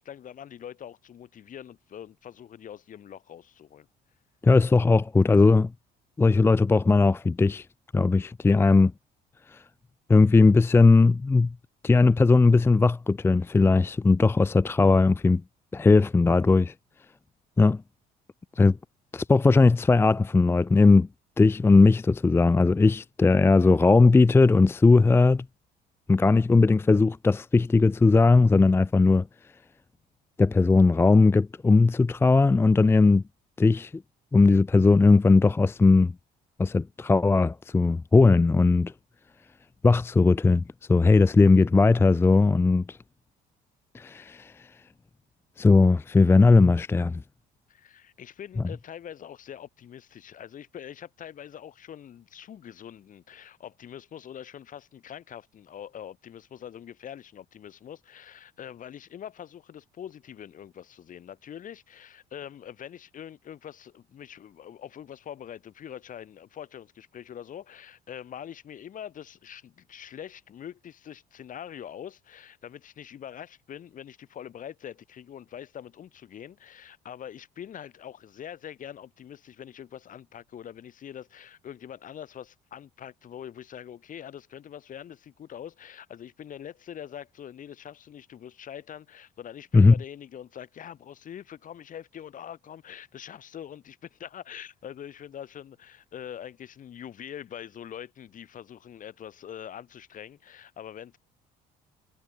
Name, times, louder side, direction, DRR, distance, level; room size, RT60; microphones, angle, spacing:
voice 1, 0.0-3.9 47.7-101.2, left 9 dB, 50° left, 3.7 m, -43 dB
voice 2, 4.4-5.7 6.2-7.7 7.9-8.9 9.5-9.6 10.1-11.5 11.8-15.4 15.7-16.7 17.6-17.8 18.6-18.8 19.1-21.1 21.4-25.5 26.1-29.3 30.4-33.2 33.6-34.0 34.3-36.1 36.6-38.9 39.8-40.6 40.9-43.0 43.9-44.7 45.6-47.2 89.7-89.9, left 3 dB, 15° left, 0.4 m, -19 dB
cardioid pair, 110°, 17 cm